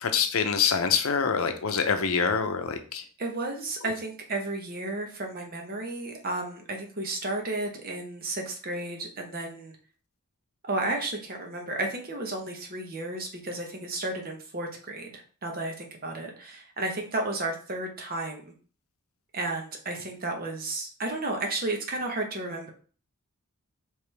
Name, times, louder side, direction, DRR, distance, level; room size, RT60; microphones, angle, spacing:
voice 1, 0.0-3.0, left 6 dB, 75° left, 7 dB, 0.6 m, -25 dB
voice 2, 3.2-9.8 10.6-18.4 19.3-22.7, right 2 dB, 40° right, 2 dB, 0.9 m, -33 dB
5.0 x 3.2 x 3.3 m, 0.41 s
head